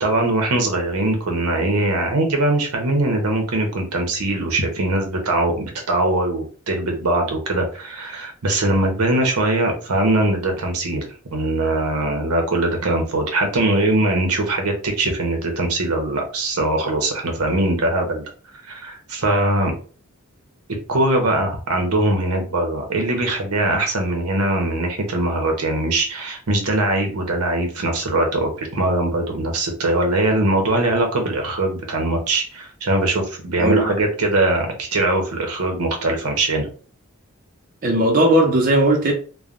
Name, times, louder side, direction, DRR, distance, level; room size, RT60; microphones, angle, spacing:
voice 1, 0.0-18.3 18.7-19.7 20.9-36.7, right 2 dB, 85° right, 0.8 m, -21 dB
voice 2, 33.6-33.9 37.8-39.1, right 1 dB, 40° right, 0.5 m, -17 dB
3.2 x 2.1 x 2.5 m
head